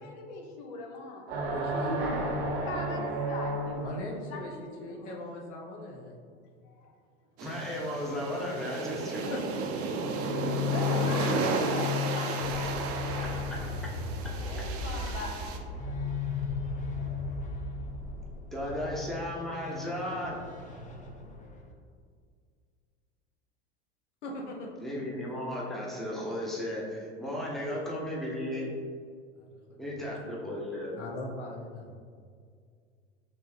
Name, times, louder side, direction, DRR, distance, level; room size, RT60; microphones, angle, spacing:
voice 1, 0.0-1.3 2.5-5.2 6.6-6.9 10.0-14.0 14.4-17.3, left 2 dB, 60° left, 2 dB, 0.8 m, -42 dB
Bending Metal, 1.3-4.2, right 2 dB, 75° right, 1.0 m, -32 dB
voice 2, 1.5-2.0 3.8-6.2 9.3-10.2 24.2-24.7 29.4-30.0 31.0-32.0, left 1 dB, 90° left, -1 dB, 0.8 m, -40 dB
voice 3, 7.4-9.3 13.8-13.9 14.2-14.3 18.5-20.4 24.8-28.7 29.8-31.0, left 1 dB, ahead, -4 dB, 1.0 m, -35 dB
sound 1, 7.4-15.6, right 4 dB, 45° right, 0.6 m, -33 dB
sound 2, 9.8-21.7, left 6 dB, 20° left, 0.6 m, -35 dB
5.3 x 3.2 x 2.8 m, 2.1 s
hypercardioid pair, 90°, 34 cm